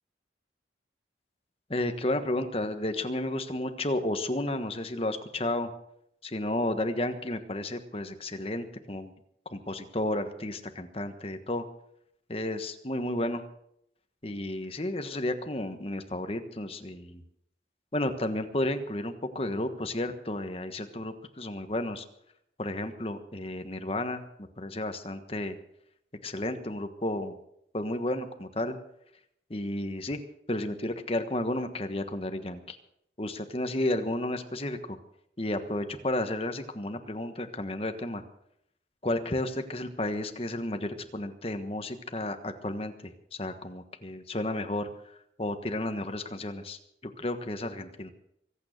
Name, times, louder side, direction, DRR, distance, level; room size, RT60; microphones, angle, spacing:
voice 1, 1.7-5.7 6.2-9.1 9.4-11.6 12.3-13.4 14.2-17.2 17.9-22.0 22.6-25.6 26.2-27.4 27.7-28.8 29.5-30.2 30.5-32.8 33.2-35.0 35.4-38.2 39.0-48.1, left 1 dB, 30° left, 8 dB, 1.4 m, -32 dB
24.0 x 9.0 x 6.6 m, 0.74 s
head